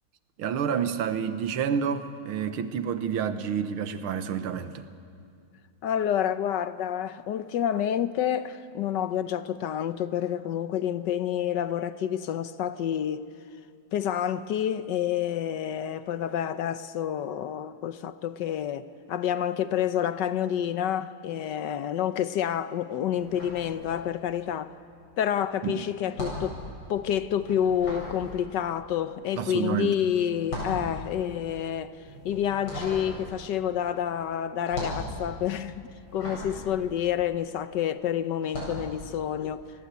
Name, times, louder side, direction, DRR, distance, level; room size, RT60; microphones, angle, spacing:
voice 1, 0.4-4.8 25.6-25.9 29.4-29.9, right 7 dB, 80° right, 2.0 m, -29 dB
voice 2, 5.8-13.3 13.9-24.8 25.2-26.6 26.9-35.8 36.1-39.6, left 9 dB, 65° left, 1.3 m, -28 dB
sound 1, 23.1-24.4 24.6-37.8 38.4-38.9, left 1 dB, 80° left, 9.0 m, -38 dB
29.0 x 20.0 x 8.3 m
omnidirectional pair, 2.3 m